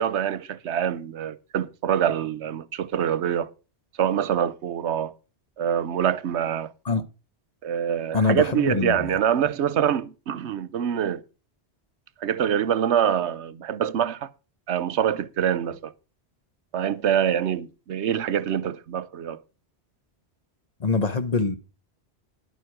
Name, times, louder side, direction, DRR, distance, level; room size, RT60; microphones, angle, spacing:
voice 1, 0.0-3.5 4.0-5.1 5.6-6.7 7.6-11.2 12.2-14.3 14.7-15.9 16.7-19.4, right 9 dB, 80° right, 1.0 m, -25 dB
voice 2, 8.1-9.2 20.8-21.5, left 4 dB, 40° left, 1.0 m, -24 dB
11.0 x 9.2 x 4.9 m
omnidirectional pair, 1.1 m